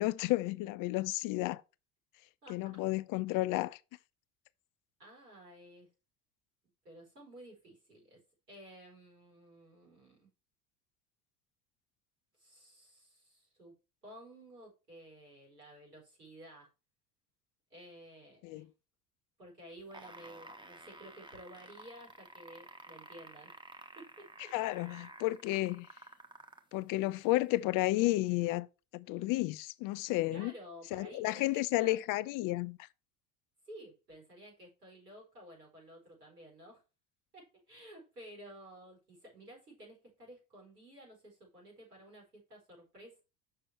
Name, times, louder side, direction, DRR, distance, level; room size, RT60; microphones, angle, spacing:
voice 1, 0.0-1.6 2.5-3.8 18.4-18.7 24.5-25.9 26.7-28.7 28.9-30.5 30.9-32.9, left 18 dB, 45° left, 0.5 m, -32 dB
voice 2, 2.4-2.8 5.0-5.9 6.8-8.2 8.5-10.3 12.4-13.7 14.0-16.7 17.7-18.7 19.4-23.6 24.0-24.5 27.2-27.3 30.3-32.0 33.7-36.8 37.3-43.2, equal, 85° right, 4.6 m, -53 dB
sound 1, 19.8-26.7 27.6-27.7, right 2 dB, 10° right, 1.2 m, -52 dB
6.9 x 5.7 x 4.5 m
figure-of-eight pair, 65°, 46 cm